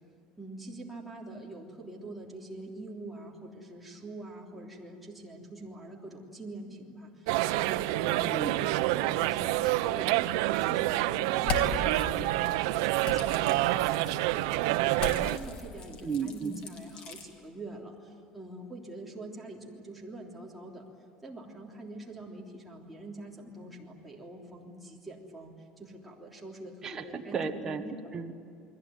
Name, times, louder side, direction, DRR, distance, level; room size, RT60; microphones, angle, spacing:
voice 1, 0.4-8.2 8.7-14.9 15.1-20.8 21.2-27.6, right 2 dB, 5° right, -4 dB, 3.3 m, -45 dB
sound 1, 7.3-15.4, right 16 dB, 90° right, 0.7 m, -27 dB
voice 2, 8.2-8.5 16.0-16.6 26.8-28.3, right 5 dB, 20° right, 4 dB, 1.3 m, -34 dB
sound 2, 11.4-12.0 13.0-14.1 14.9-17.3, left 4 dB, 45° left, 3.2 m, -37 dB
29.5 x 21.5 x 9.3 m, 2.3 s
cardioid pair, 160°, 2 cm